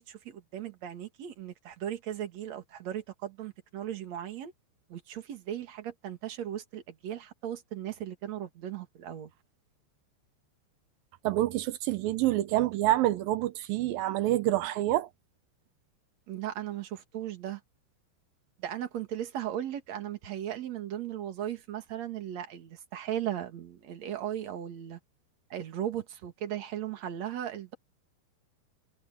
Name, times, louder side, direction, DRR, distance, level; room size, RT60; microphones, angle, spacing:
voice 1, 0.0-4.5 4.9-9.3 16.3-17.6 18.6-25.0 25.5-27.7, right 11 dB, 50° right, 2.5 m, -37 dB
voice 2, 11.2-15.1, right 15 dB, 90° right, 2.0 m, -27 dB
omnidirectional pair, 5.4 m